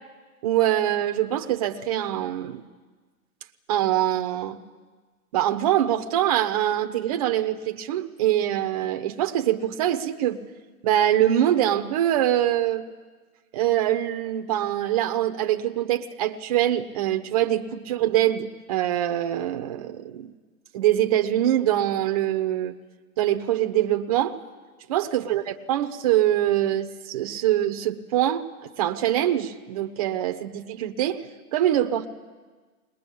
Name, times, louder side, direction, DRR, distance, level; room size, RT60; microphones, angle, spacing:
voice 1, 0.4-2.6 3.7-4.6 5.3-10.4 10.8-12.9 13.5-20.3 20.7-22.8 23.2-24.4 24.9-31.3 31.5-32.1, right 12 dB, 25° right, 6 dB, 0.9 m, -24 dB
21.5 x 20.5 x 8.5 m, 1.4 s
hypercardioid pair, 150°, 44 cm